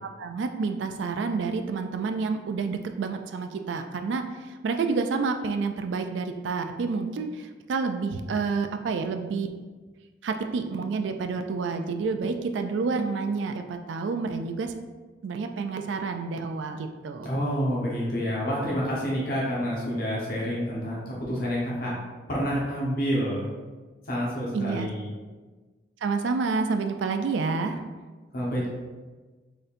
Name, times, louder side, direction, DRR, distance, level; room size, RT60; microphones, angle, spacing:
voice 1, 0.0-9.5 10.2-14.7 15.2-17.3 24.5-24.9 26.0-27.8, right 4 dB, 90° right, 6 dB, 0.4 m, -29 dB
voice 2, 17.2-22.0 22.3-23.4 24.0-25.1 28.3-28.7, equal, 55° left, -5 dB, 1.1 m, -28 dB
4.2 x 3.8 x 2.6 m, 1.3 s
head